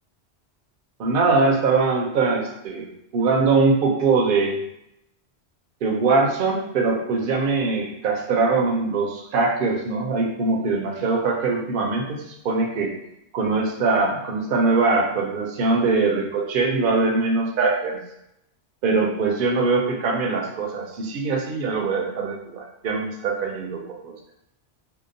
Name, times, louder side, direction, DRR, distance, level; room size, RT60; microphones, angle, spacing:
voice 1, 1.0-2.9 3.1-4.6 5.8-12.9 13.3-18.0 18.8-24.1, right 3 dB, 60° right, 0 dB, 0.6 m, -22 dB
2.8 x 2.0 x 2.5 m, 0.82 s
omnidirectional pair, 1.2 m